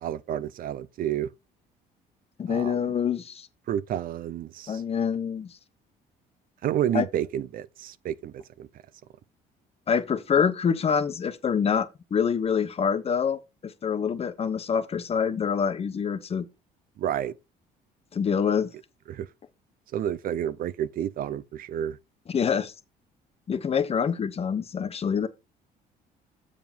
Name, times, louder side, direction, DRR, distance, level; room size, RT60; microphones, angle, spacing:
voice 1, 0.0-1.3 2.5-2.9 3.7-4.8 6.6-8.7 17.0-17.4 19.1-19.3 19.9-22.0, right 10 dB, 60° right, 0.5 m, -30 dB
voice 2, 2.4-3.5 4.7-5.5 6.9-7.1 9.9-16.4 18.1-18.7 22.3-22.7 23.5-25.3, left 7 dB, 35° left, 1.1 m, -26 dB
7.2 x 4.9 x 5.3 m
cardioid pair, 110°, 17 cm